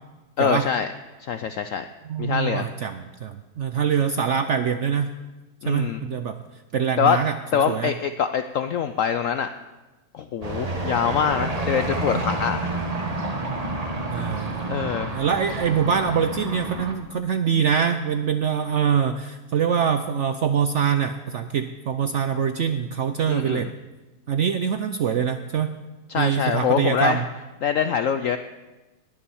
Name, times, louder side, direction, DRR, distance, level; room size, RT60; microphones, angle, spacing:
voice 1, 0.4-0.9 1.2-1.9 2.2-2.7 5.6-6.0 7.0-7.2 7.5-9.5 10.1-12.8 14.7-15.1 23.3-23.7 26.1-27.2 27.6-28.4, left 7 dB, 70° left, 10 dB, 0.8 m, -24 dB
voice 2, 2.1-5.1 5.7-6.3 6.7-7.4 7.7-7.9 14.1-14.8 15.1-23.7 24.3-25.8 26.1-27.2, right 7 dB, 75° right, 9 dB, 0.6 m, -24 dB
sound 1, 10.4-16.9, right 2 dB, 25° right, 1.2 m, -29 dB
20.0 x 7.2 x 7.0 m, 1.1 s
omnidirectional pair, 1.9 m